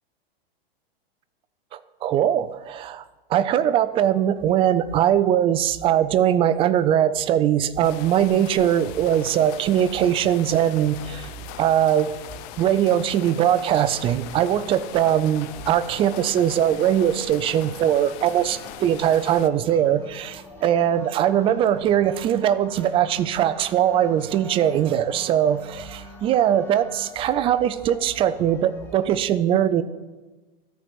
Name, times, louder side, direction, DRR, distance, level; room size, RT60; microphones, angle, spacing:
voice 1, 1.7-3.0 3.3-11.3 11.6-12.1 12.6-29.8, right 10 dB, 20° right, 13 dB, 0.3 m, -21 dB
sound 1, 7.8-19.5, left 12 dB, 40° left, 0.5 m, -40 dB
sound 2, 15.4-29.2, equal, 5° left, 1.5 m, -45 dB
13.5 x 4.6 x 6.1 m, 1.2 s
hypercardioid pair, 115°, 31 cm